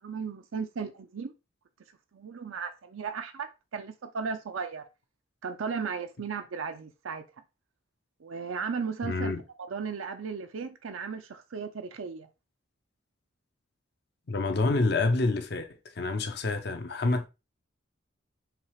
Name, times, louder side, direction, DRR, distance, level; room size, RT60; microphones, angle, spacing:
voice 1, 0.0-1.3 2.1-4.8 5.4-7.2 8.2-9.3 9.7-12.3, right 5 dB, 85° right, 0.5 m, -35 dB
voice 2, 9.0-9.4 14.3-15.7 16.0-17.3, left 3 dB, 55° left, 0.6 m, -27 dB
5.8 x 2.4 x 3.1 m
head